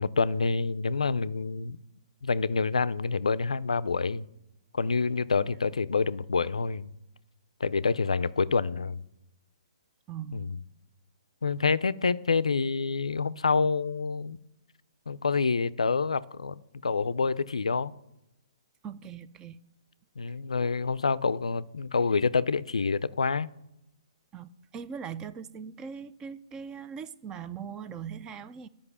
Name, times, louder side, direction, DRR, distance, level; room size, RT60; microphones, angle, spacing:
voice 1, 0.0-1.8 2.2-4.3 4.7-6.9 7.6-9.0 10.3-10.6 11.4-14.4 15.1-17.9 20.2-23.5, left 4 dB, 90° left, 0.4 m, -27 dB
voice 2, 10.1-10.5 18.8-19.6 24.3-28.7, right 7 dB, 20° right, 0.4 m, -40 dB
9.9 x 5.3 x 6.8 m
hypercardioid pair, 140°, 3 cm